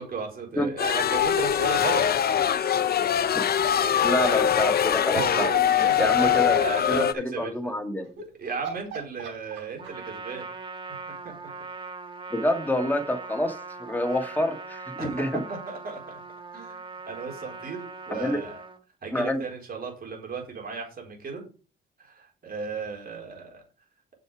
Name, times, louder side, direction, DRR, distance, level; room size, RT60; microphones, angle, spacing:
voice 1, 0.0-2.8 3.5-3.9 5.2-7.7 8.4-10.5 10.9-11.5 15.0-16.2 16.5-16.8 17.1-18.6 19.0-21.4 22.0-23.6, right 5 dB, 50° right, 0 dB, 4.1 m, -35 dB
sound 1, 0.8-7.1, left 9 dB, 50° left, 0.7 m, -23 dB
voice 2, 4.0-5.5 5.8-6.6 6.9-8.2 12.3-15.4 18.1-18.4 19.1-19.4, left 1 dB, 10° left, 4 dB, 1.9 m, -27 dB
sound 2, 4.6-6.0 8.0-8.3 8.6-10.2, right 5 dB, 85° right, 4.8 m, -40 dB
Trumpet, 9.8-18.8, right 4 dB, 25° right, 1.6 m, -40 dB
6.9 x 6.6 x 4.8 m, 0.36 s
cardioid pair, 90°, 20 cm